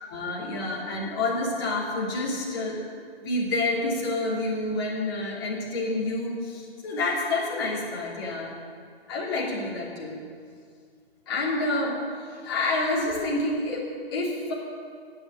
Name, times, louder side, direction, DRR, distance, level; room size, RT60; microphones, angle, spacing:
voice 1, 0.1-2.8 3.2-8.5 9.1-10.2 11.3-14.5, left 2 dB, 25° left, -4 dB, 2.8 m, -28 dB
11.0 x 8.9 x 9.2 m, 2.2 s
figure-of-eight pair, 155°, 31 cm